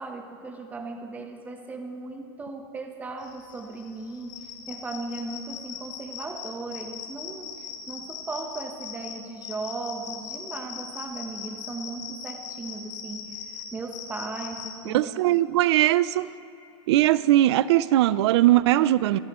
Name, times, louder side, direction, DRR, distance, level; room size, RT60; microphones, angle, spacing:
voice 1, 0.0-13.4 13.7-15.4, right 3 dB, 10° right, 4 dB, 1.0 m, -37 dB
sound 1, 3.2-14.7, left 8 dB, 80° left, 3.3 m, -39 dB
voice 2, 14.9-16.3 16.9-19.2, right 14 dB, 65° right, 17 dB, 0.5 m, -20 dB
25.5 x 14.5 x 3.1 m, 2.9 s
supercardioid pair, 160°, 15 cm